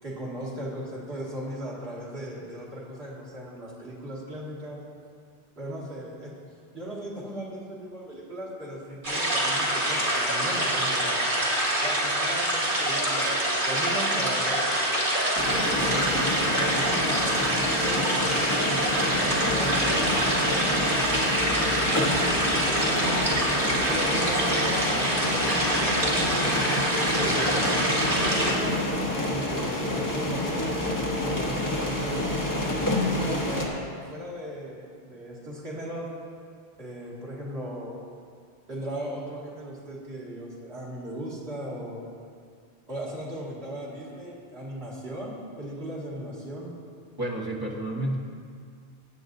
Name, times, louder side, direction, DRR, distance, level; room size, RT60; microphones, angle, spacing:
voice 1, 0.0-4.8 5.6-6.3 6.7-11.1 11.8-14.6 15.7-17.3 17.8-21.2 21.6-24.8 25.3-28.7 29.3-32.4 33.1-36.1 36.8-37.9 38.7-42.0 42.9-46.8, right 1 dB, 75° right, -7 dB, 2.5 m, -37 dB
sound 1, 9.0-28.5, right 1 dB, 55° right, 1.9 m, -25 dB
sound 2, 15.3-33.7, left 1 dB, 20° left, 1.1 m, -28 dB
voice 2, 47.2-48.2, right 1 dB, 20° right, -2 dB, 1.2 m, -30 dB
15.0 x 8.7 x 2.7 m, 2.2 s
omnidirectional pair, 1.1 m